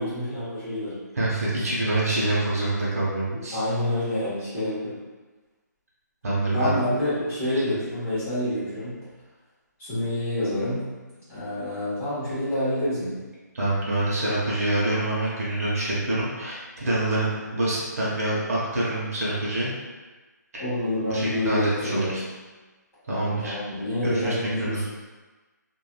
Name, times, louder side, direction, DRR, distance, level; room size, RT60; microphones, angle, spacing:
voice 1, 0.0-1.0 3.3-4.9 6.5-9.0 9.8-10.9 11.3-13.2 20.6-22.2 23.1-24.9, left 1 dB, 10° left, -17 dB, 1.2 m, -27 dB
voice 2, 1.1-3.6 6.2-6.8 13.5-19.7 21.1-22.2 23.1-23.6 24.0-24.8, right 2 dB, 55° right, -7 dB, 0.9 m, -26 dB
3.3 x 2.5 x 2.2 m, 1.3 s
hypercardioid pair, 170°, 10 cm